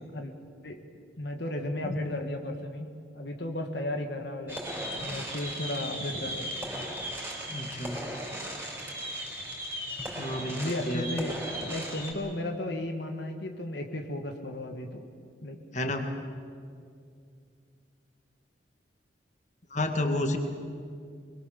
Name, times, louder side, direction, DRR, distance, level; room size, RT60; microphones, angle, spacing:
voice 1, 1.2-4.6 5.0-6.5 10.5-15.1 15.4-15.6, left 1 dB, 60° left, 4 dB, 1.7 m, -34 dB
voice 2, 1.8-2.2 7.5-8.0 10.2-11.1 15.7-16.0 19.7-20.4, left 1 dB, 40° left, 5 dB, 1.9 m, -31 dB
sound 1, 4.5-12.1, equal, 10° right, 4.4 m, -36 dB
25.0 x 22.0 x 7.1 m, 2.3 s
head